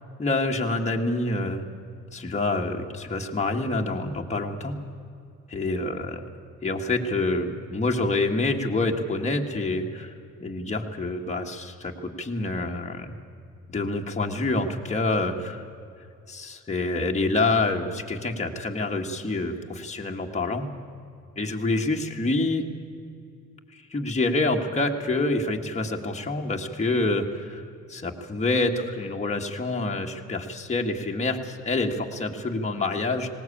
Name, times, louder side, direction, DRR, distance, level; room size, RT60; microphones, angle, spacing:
voice 1, 0.2-1.6 2.1-4.8 5.5-6.2 6.6-10.1 10.4-13.1 13.7-15.7 16.3-20.7 21.4-22.7 23.7-27.6 27.9-33.3, left 2 dB, 25° left, 1 dB, 1.9 m, -27 dB
19.0 x 18.0 x 8.7 m, 2.5 s
cardioid pair, 90°, 30 cm